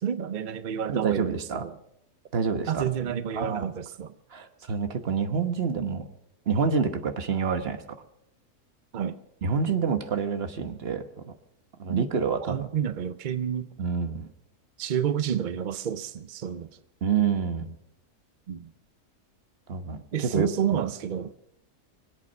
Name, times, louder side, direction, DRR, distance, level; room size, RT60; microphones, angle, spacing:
voice 1, 0.0-1.7 2.7-4.1 8.9-9.2 11.9-12.1 12.5-13.7 14.8-16.7 18.5-18.7 20.1-21.3, right 9 dB, 65° right, 0.4 m, -29 dB
voice 2, 0.9-1.6 2.3-3.7 4.3-6.1 6.5-7.8 9.4-11.3 11.8-12.7 13.8-14.3 17.0-17.7 19.7-20.5, right 5 dB, 45° right, 1.2 m, -28 dB
25.0 x 8.3 x 6.4 m
omnidirectional pair, 1.6 m